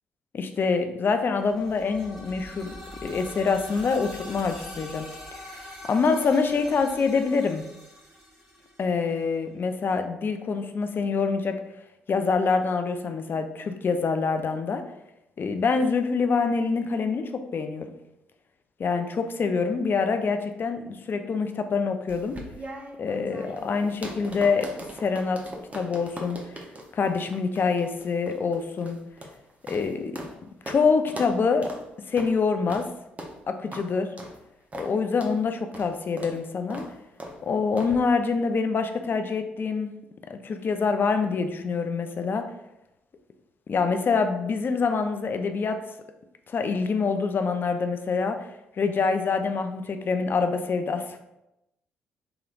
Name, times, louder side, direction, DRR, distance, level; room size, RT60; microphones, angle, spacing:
voice 1, 0.3-2.7 3.0-5.1 5.5-7.7 8.8-11.6 12.1-14.8 15.4-17.9 18.8-22.4 23.0-24.7 25.0-25.5 25.7-26.4 26.9-29.0 29.7-30.2 30.7-31.7 32.1-32.9 33.5-34.1 34.8-36.8 37.4-39.9 40.3-42.5 43.7-45.8 46.5-48.4 48.8-51.2, left 5 dB, 45° left, 7 dB, 0.4 m, -25 dB
sound 1, 1.4-9.2, left 1 dB, 5° right, 1.4 m, -43 dB
sound 2, 22.1-30.4 30.7-30.8 31.1-31.3 31.6-31.8 32.2-32.3 32.7-32.9 33.2-33.3 33.7-33.9 34.2-34.4 34.7-34.9 35.2-35.4 35.7-35.9 36.2-36.4 36.7-36.9 37.2-37.4 37.8-38.0, right 1 dB, 25° right, 0.7 m, -40 dB
3.1 x 2.9 x 2.4 m, 0.89 s
hypercardioid pair, 45°, 5 cm